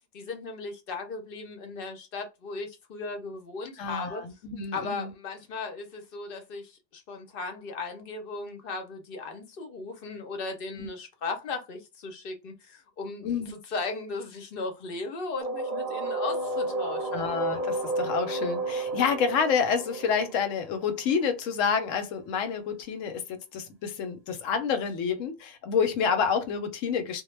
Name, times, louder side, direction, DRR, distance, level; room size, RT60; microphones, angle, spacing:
voice 1, 0.1-4.2 4.7-17.3, left 3 dB, 55° left, 0.7 m, -37 dB
voice 2, 3.8-5.1 10.8-10.9 13.2-13.5 17.1-27.2, left 6 dB, 80° left, 0.9 m, -28 dB
sound 1, 15.4-21.1, right 2 dB, 40° right, 0.6 m, -31 dB
2.2 x 2.1 x 3.1 m
omnidirectional pair, 1.3 m